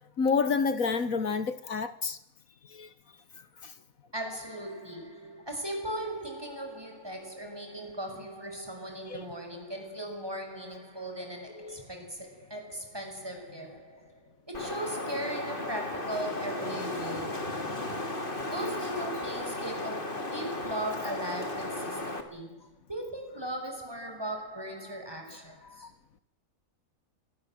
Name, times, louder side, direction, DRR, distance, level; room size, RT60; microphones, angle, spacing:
voice 1, 0.2-2.2 2.7-2.9 3.6-3.7 9.1-9.2 11.6-11.8 25.8-25.9, left 5 dB, 70° left, 1.8 m, -29 dB
voice 2, 4.1-17.7 18.5-25.9, right 1 dB, 15° right, 6.4 m, -38 dB
Wind, 14.5-22.2, left 2 dB, 35° left, 3.1 m, -35 dB
27.0 x 22.5 x 7.7 m
omnidirectional pair, 1.5 m